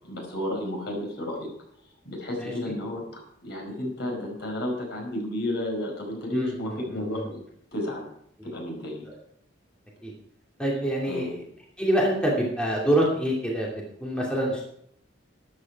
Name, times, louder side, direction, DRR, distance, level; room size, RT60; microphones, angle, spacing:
voice 1, 0.0-1.5 2.0-7.4 7.7-8.1 8.4-9.0 11.1-11.4, left 1 dB, 60° left, 1 dB, 5.1 m, -32 dB
voice 2, 6.3-7.3 9.1-9.2 10.0-10.1 10.6-11.4 11.8-14.6, right 1 dB, 5° left, -3 dB, 2.8 m, -26 dB
13.5 x 11.0 x 4.7 m, 0.70 s
head